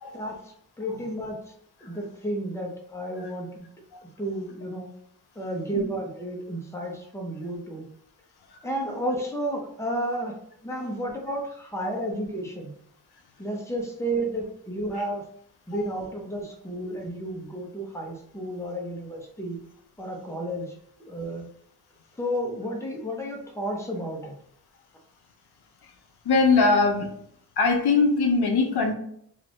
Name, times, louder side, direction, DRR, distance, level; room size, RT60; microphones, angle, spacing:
voice 1, 0.1-1.4 1.8-3.7 4.2-4.9 5.4-7.9 8.6-10.3 10.6-12.7 13.4-15.2 15.7-19.6 20.0-21.4 22.2-24.3, right 1 dB, 5° left, 0 dB, 0.8 m, -32 dB
voice 2, 26.2-27.2 27.6-28.9, left 4 dB, 80° left, 3 dB, 0.5 m, -22 dB
2.6 x 2.4 x 3.4 m, 0.68 s
wide cardioid pair, 65°, 38 cm